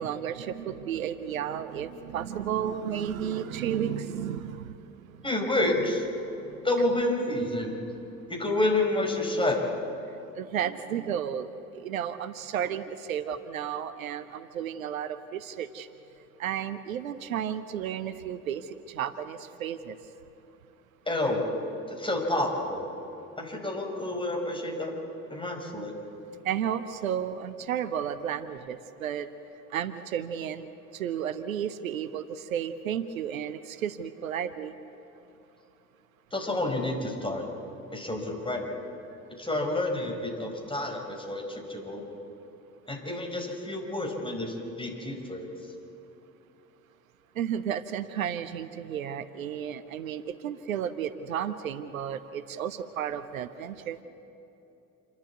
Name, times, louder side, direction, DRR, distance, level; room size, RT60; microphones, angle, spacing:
voice 1, 0.0-4.8 7.3-7.4 10.3-15.9 16.4-20.0 26.4-29.3 29.7-30.7 30.9-34.7 47.4-54.0, right 9 dB, 75° right, 12 dB, 0.8 m, -33 dB
voice 2, 5.2-6.0 6.6-7.8 8.3-9.6 21.1-21.4 21.9-22.9 23.4-24.9 25.3-25.9 36.3-37.4 37.9-38.6 39.4-42.1 42.9-45.5, left 2 dB, 10° left, 1 dB, 4.9 m, -29 dB
27.5 x 12.0 x 8.3 m, 2.9 s
figure-of-eight pair, 55°, 41 cm